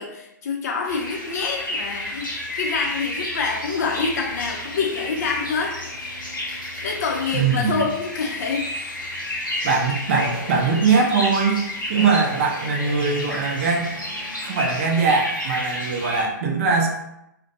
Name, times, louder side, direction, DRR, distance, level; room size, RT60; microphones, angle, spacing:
voice 1, 0.0-5.8 6.8-8.7, left 5 dB, 55° left, 1 dB, 0.5 m, -26 dB
sound 1, 0.9-16.2, left 1 dB, 90° left, 0.8 m, -31 dB
voice 2, 7.3-7.8 9.6-11.6 11.9-13.9 14.4-16.9, right 4 dB, 45° right, 1 dB, 0.5 m, -21 dB
2.4 x 2.1 x 2.6 m, 0.83 s
figure-of-eight pair, 120°, 11 cm